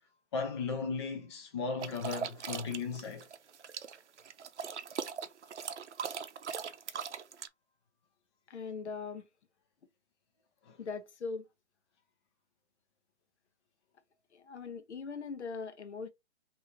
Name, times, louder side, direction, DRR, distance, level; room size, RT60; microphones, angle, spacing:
voice 1, 0.3-3.3 10.7-10.8, left 4 dB, 25° left, 0.4 m, -36 dB
sound 1, 1.8-7.5, right 7 dB, 80° right, 0.6 m, -40 dB
voice 2, 8.5-9.3 10.8-11.5 14.3-16.1, left 5 dB, 75° left, 0.8 m, -40 dB
3.1 x 2.7 x 2.9 m
figure-of-eight pair, 135°, 34 cm